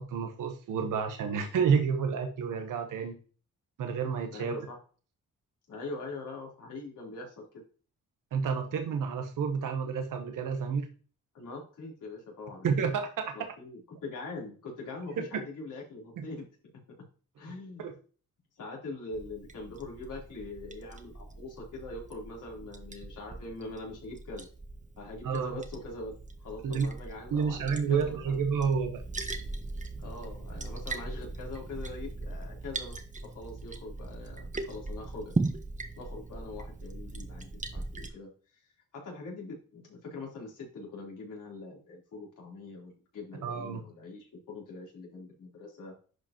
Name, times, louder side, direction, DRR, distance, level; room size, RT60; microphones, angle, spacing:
voice 1, 0.0-3.2 3.8-4.5 8.3-10.9 12.6-13.3 15.2-15.3 16.2-16.3 17.8-17.9 25.2-25.6 26.6-26.9 27.3-29.0 43.4-43.8, right 6 dB, 90° right, 6 dB, 1.2 m, -30 dB
voice 2, 4.3-4.8 5.7-7.6 11.3-12.9 13.3-16.5 16.7-16.8 17.4-17.9 18.6-24.5 25.0-26.1 26.4-28.4 30.0-35.4 36.0-38.6 38.9-46.0, left 3 dB, 80° left, -2 dB, 3.8 m, -43 dB
Liquid, 19.1-38.1, right 3 dB, 25° right, 1.1 m, -39 dB
10.5 x 5.1 x 3.0 m, 0.38 s
cardioid pair, 75°, 31 cm